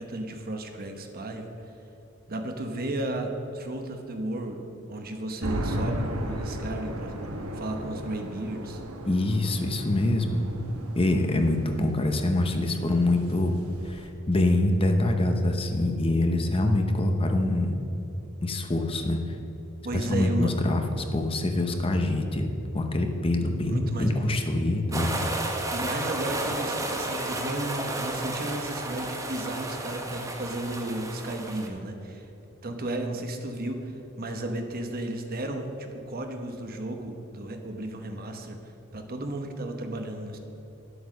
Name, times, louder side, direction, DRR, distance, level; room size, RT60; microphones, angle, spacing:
voice 1, 0.0-1.5 2.3-7.1 7.5-8.8 19.8-20.5 23.7-24.4 25.7-32.3 32.6-38.6 38.9-40.4, right 1 dB, 45° right, 5 dB, 1.1 m, -34 dB
sound 1, 5.4-14.1, equal, 85° right, 1.2 m, -35 dB
voice 2, 9.1-10.4 11.0-13.5 13.8-17.7 18.4-19.2 19.9-20.8 21.1-22.5 22.7-25.1, left 1 dB, 25° left, 5 dB, 0.8 m, -25 dB
sound 2, 24.9-31.7, right 2 dB, 15° right, 1.0 m, -32 dB
10.0 x 8.1 x 6.3 m, 3.0 s
head